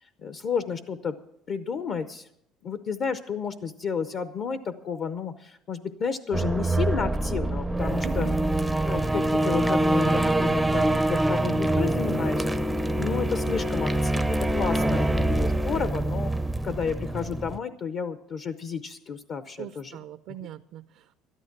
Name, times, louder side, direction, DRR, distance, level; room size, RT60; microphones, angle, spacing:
voice 1, 0.0-1.2 1.5-2.3 2.6-8.3 8.8-12.5 13.0-16.3 16.6-20.0, left 6 dB, 45° left, 11 dB, 0.6 m, -31 dB
sound 1, 6.3-17.6, right 1 dB, 5° right, 0.5 m, -25 dB
voice 2, 8.0-8.4 13.4-13.7 14.7-15.1 15.7-16.0 19.6-21.1, right 12 dB, 65° right, 10 dB, 0.5 m, -40 dB
13.0 x 12.0 x 5.9 m, 0.73 s
cardioid pair, 140°, 0 cm